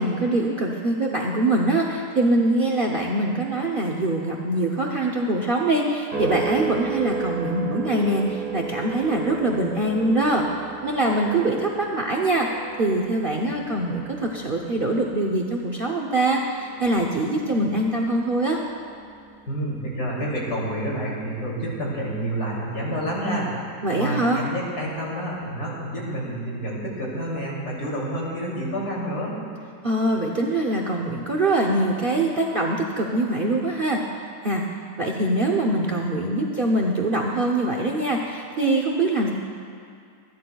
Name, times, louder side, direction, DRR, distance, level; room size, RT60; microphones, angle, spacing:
voice 1, 0.0-10.4 10.8-12.5 12.8-18.6 23.8-24.4 29.8-34.0 34.4-34.6 35.0-39.3, right 2 dB, 45° right, 0 dB, 0.7 m, -23 dB
sound 1, 6.1-20.6 21.1-21.5, right 5 dB, 70° right, 2.2 m, -35 dB
voice 2, 19.5-29.3, right 1 dB, 70° left, -5 dB, 3.4 m, -29 dB
25.0 x 10.5 x 2.3 m, 2.3 s
omnidirectional pair, 1.8 m